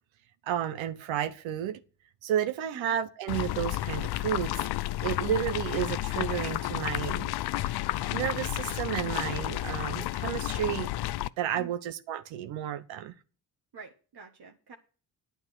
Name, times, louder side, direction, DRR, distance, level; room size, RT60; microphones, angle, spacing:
voice 1, 0.5-1.8 2.2-4.6 5.0-7.7 8.1-10.9 11.4-13.1, right 10 dB, 80° right, 1.0 m, -32 dB
sound 1, 3.3-11.3, left 16 dB, 60° left, 0.5 m, -31 dB
voice 2, 13.7-14.7, right 5 dB, 55° right, 1.6 m, -47 dB
9.3 x 8.6 x 6.2 m
supercardioid pair, 60°, 46 cm